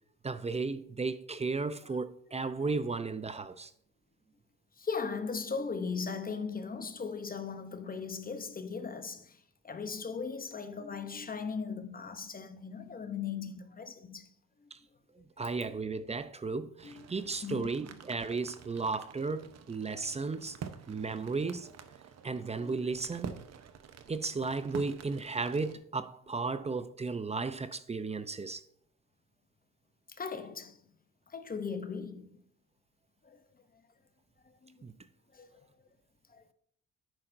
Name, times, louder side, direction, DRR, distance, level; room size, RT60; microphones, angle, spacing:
voice 1, 0.2-3.7 14.7-14.8 15.2-20.6 20.9-21.7 22.2-23.3 24.1-28.6 34.8-34.9, right 4 dB, 20° right, 0.6 m, -34 dB
voice 2, 4.8-14.3 16.8-17.1 17.4-18.0 22.6-22.8 30.1-30.8 31.3-32.5 33.2-33.4 34.6-34.8 35.3-35.6 36.3-36.4, left 5 dB, 30° left, 0.8 m, -38 dB
sound 1, 16.8-25.8, right 7 dB, 60° right, 1.0 m, -48 dB
10.5 x 8.8 x 2.6 m
cardioid pair, 90°, 30 cm